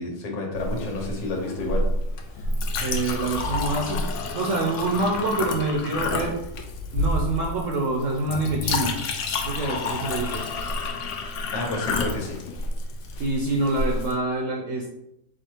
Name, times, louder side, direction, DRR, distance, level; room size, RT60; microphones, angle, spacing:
voice 1, 0.0-1.8 11.5-12.4, left 2 dB, 85° left, 1 dB, 1.6 m, -30 dB
Chink clink, 0.5-14.1, left 2 dB, 70° left, 0.7 m, -29 dB
voice 2, 2.8-4.0 4.3-6.3 6.9-9.0 9.4-10.4 13.2-14.9, right 2 dB, 65° right, -1 dB, 0.8 m, -26 dB
4.6 x 2.4 x 4.4 m, 0.84 s
omnidirectional pair, 1.9 m